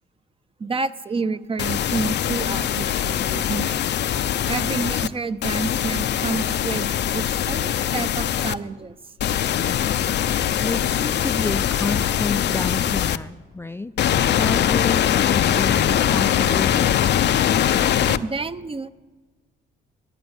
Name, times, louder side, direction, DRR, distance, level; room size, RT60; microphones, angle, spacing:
voice 1, 0.6-3.8 4.5-9.0 18.1-18.9, right 4 dB, 25° right, 12 dB, 0.6 m, -29 dB
sound 1, 1.6-5.1 5.4-8.5 9.2-13.2 14.0-18.2, left 10 dB, 60° left, 0.6 m, -22 dB
voice 2, 10.6-14.0 14.3-17.0, left 3 dB, 10° left, 10 dB, 0.4 m, -30 dB
14.5 x 9.4 x 9.8 m, 1.3 s
cardioid pair, 90°, 20 cm